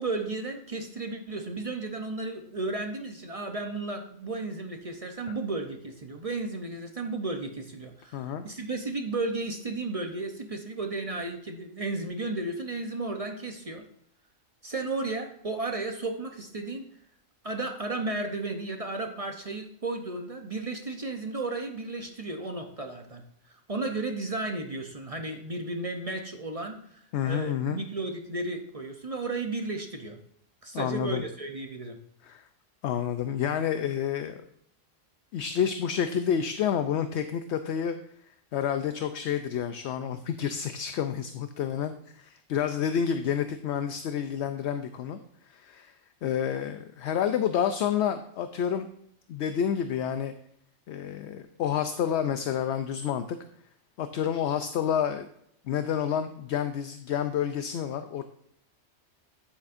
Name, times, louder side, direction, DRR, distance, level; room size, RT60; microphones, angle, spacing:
voice 1, 0.0-13.8 14.6-16.8 17.4-23.2 23.7-30.2 30.6-32.0, right 2 dB, 35° right, 4 dB, 0.7 m, -34 dB
voice 2, 8.1-8.5 27.1-27.8 30.7-31.2 32.2-32.4 32.8-34.4 35.3-38.0 38.5-45.2 45.5-45.9 46.2-48.9 49.3-50.3 50.9-53.4 54.0-55.3 55.7-58.2, left 8 dB, 70° left, 9 dB, 0.8 m, -29 dB
9.7 x 8.4 x 2.6 m, 0.70 s
omnidirectional pair, 1.3 m